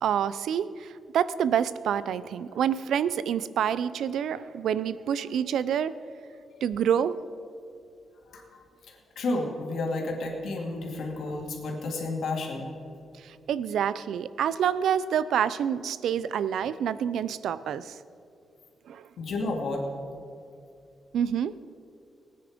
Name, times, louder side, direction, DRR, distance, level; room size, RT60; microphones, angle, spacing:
voice 1, 0.0-5.9 6.6-7.1 13.2-18.0 18.9-19.0 21.1-21.5, right 8 dB, 85° right, 16 dB, 0.5 m, -27 dB
voice 2, 8.3-12.7 19.2-19.8, left 2 dB, 65° left, 0 dB, 2.6 m, -32 dB
19.0 x 9.6 x 5.1 m, 2.5 s
wide cardioid pair, 160°, 0 cm